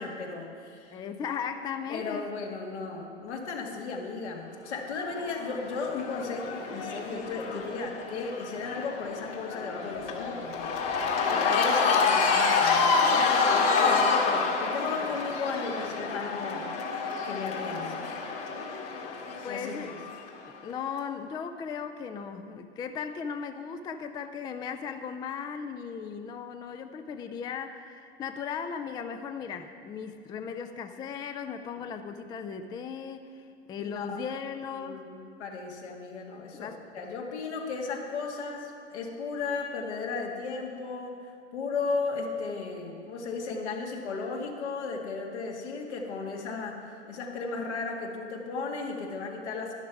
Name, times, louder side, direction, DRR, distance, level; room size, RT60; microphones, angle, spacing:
voice 1, 0.0-1.0 1.9-10.8 11.3-16.7 17.2-18.0 19.5-20.0 33.8-34.2 34.8-49.7, left 4 dB, 75° left, 0 dB, 2.0 m, -35 dB
voice 2, 0.9-2.2 19.4-20.0 20.5-35.1 36.5-36.8, left 6 dB, 15° left, 8 dB, 0.3 m, -37 dB
Cheering / Crowd, 5.0-20.3, left 4 dB, 45° left, 1.9 m, -28 dB
11.0 x 11.0 x 4.7 m, 2.3 s
hypercardioid pair, 95°, 34 cm